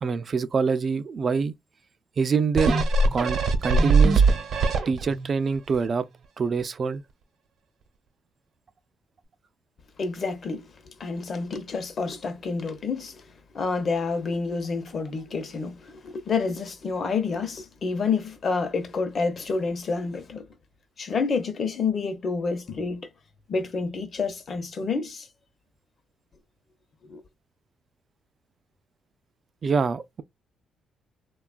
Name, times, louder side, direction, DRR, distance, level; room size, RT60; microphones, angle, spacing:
voice 1, 0.0-1.5 2.2-2.7 3.1-4.2 4.9-6.1 6.4-7.0 29.6-30.2, right 5 dB, 45° right, 0.3 m, -25 dB
sound 1, 2.6-5.3 5.7-5.8, right 3 dB, 65° right, 0.8 m, -21 dB
voice 2, 10.0-13.3 13.5-20.5 21.0-23.1 23.5-25.3 27.0-27.2, left 4 dB, 50° left, 0.7 m, -29 dB
2.9 x 2.3 x 2.4 m
cardioid pair, 90°, 0 cm